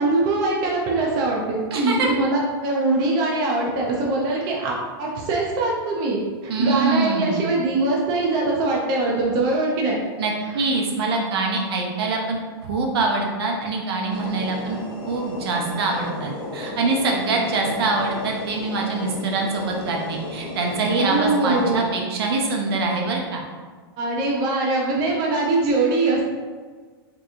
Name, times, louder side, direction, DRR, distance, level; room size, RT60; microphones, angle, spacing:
voice 1, 0.0-10.0 20.9-21.9 24.0-26.2, right 2 dB, 30° right, -2 dB, 0.5 m, -22 dB
voice 2, 1.7-2.1 6.5-7.4 10.2-14.8 15.1-23.4, right 3 dB, 70° right, 0 dB, 0.8 m, -24 dB
sound 1, 14.1-21.8, left 2 dB, 45° left, 0.7 m, -34 dB
3.6 x 2.8 x 2.5 m, 1.5 s
supercardioid pair, 150°, 13 cm